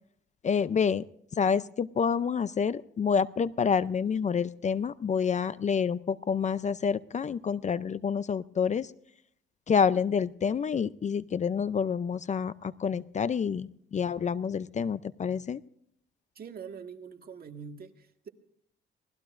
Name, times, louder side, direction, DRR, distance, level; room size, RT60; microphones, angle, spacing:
voice 1, 0.4-1.0 1.4-8.9 9.7-15.6, left 6 dB, 35° left, 0.5 m, -28 dB
voice 2, 16.4-18.3, right 6 dB, 50° right, 1.9 m, -44 dB
24.5 x 18.5 x 2.6 m
cardioid pair, 90°, 20 cm